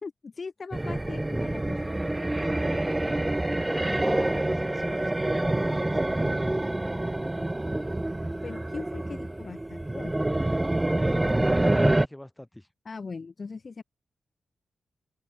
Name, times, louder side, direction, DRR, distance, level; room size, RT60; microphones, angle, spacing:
voice 1, 0.0-1.8 2.4-2.9 3.8-4.5 8.4-10.3 12.8-13.8, left 4 dB, 35° left, 1.2 m, -40 dB
sound 1, 0.7-12.1, right 1 dB, 10° right, 0.4 m, -27 dB
voice 2, 2.5-2.9 3.7-6.6 11.8-12.7, left 1 dB, 5° left, 2.0 m, -41 dB
open air
wide cardioid pair, 155°, 0 cm